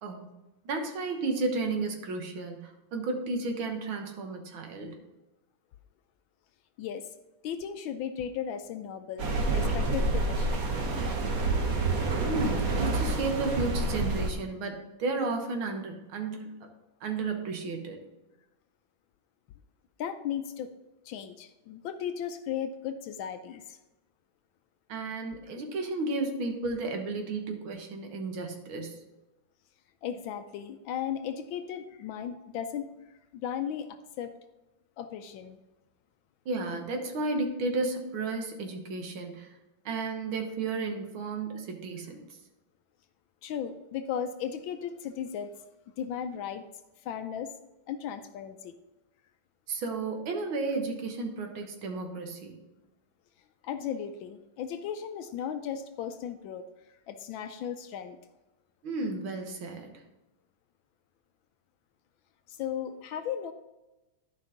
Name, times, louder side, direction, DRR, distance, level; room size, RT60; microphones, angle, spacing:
voice 1, 0.7-5.0 12.3-16.5 17.0-18.0 24.9-29.0 36.5-39.6 39.9-42.3 49.7-52.6 58.8-59.9, right 3 dB, 70° right, 4 dB, 1.9 m, -33 dB
voice 2, 6.8-7.1 7.4-10.7 20.0-20.7 21.0-23.8 30.0-32.9 33.3-34.3 35.0-35.6 43.4-45.5 46.0-46.6 47.0-47.5 47.9-48.7 53.6-56.7 57.1-58.2 62.5-63.5, left 8 dB, 75° left, 9 dB, 1.2 m, -36 dB
sound 1, 9.2-14.3, right 3 dB, 50° right, 1.2 m, -28 dB
11.5 x 5.2 x 3.8 m, 1.0 s
omnidirectional pair, 2.3 m